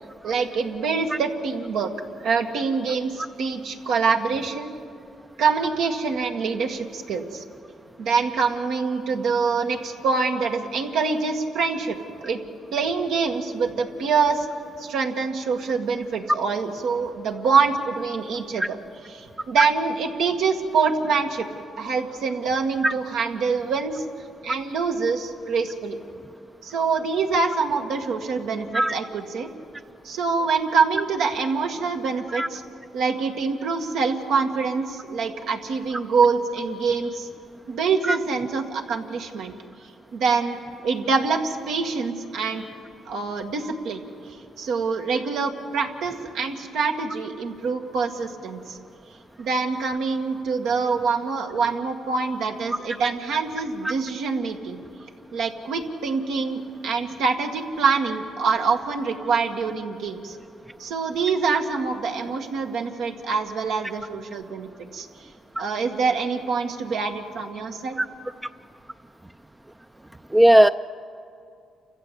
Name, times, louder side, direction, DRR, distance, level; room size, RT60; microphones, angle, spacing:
voice 1, 0.2-1.9 2.2-4.7 5.4-7.4 8.0-12.0 12.2-12.4 12.7-14.5 14.8-18.8 19.1-21.5 21.8-24.0 24.4-26.0 26.6-29.5 30.0-32.6 32.9-37.3 37.7-39.5 40.1-40.6 40.8-42.6 43.1-48.8 49.4-54.8 55.3-60.4 60.8-65.1 65.6-68.0, right 5 dB, 80° right, 4 dB, 1.9 m, -25 dB
voice 2, 70.3-70.7, right 1 dB, 10° right, 9 dB, 0.4 m, -16 dB
29.0 x 15.0 x 8.3 m, 2.4 s
cardioid pair, 90°, 0 cm